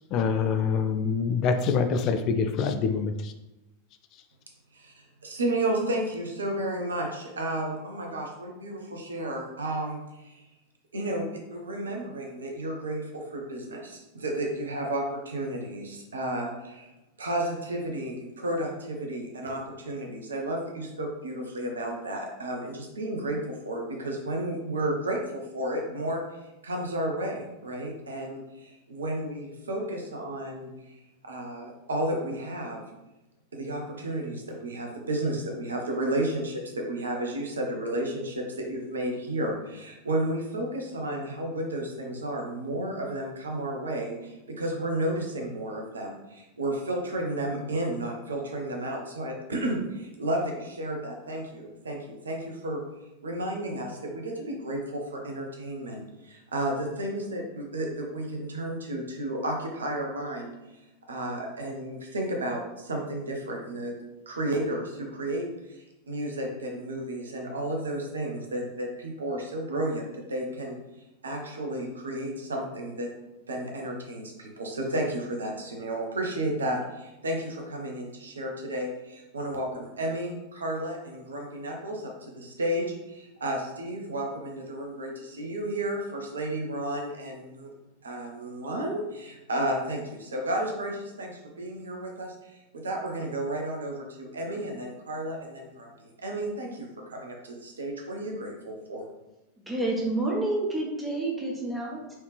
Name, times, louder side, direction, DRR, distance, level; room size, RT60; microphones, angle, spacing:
voice 1, 0.1-3.3, left 5 dB, 40° left, 8 dB, 0.3 m, -25 dB
voice 2, 4.7-10.4 10.9-16.9 17.2-26.2 26.6-31.0 31.3-32.8 33.5-52.8 53.2-60.8 61.1-64.0 64.3-70.8 71.2-73.1 73.5-87.7 88.0-99.1, right 1 dB, 70° right, 1 dB, 1.0 m, -32 dB
voice 3, 99.6-102.1, right 2 dB, 10° right, -3 dB, 1.4 m, -29 dB
4.6 x 3.3 x 3.2 m, 0.98 s
figure-of-eight pair, 90°, 0 cm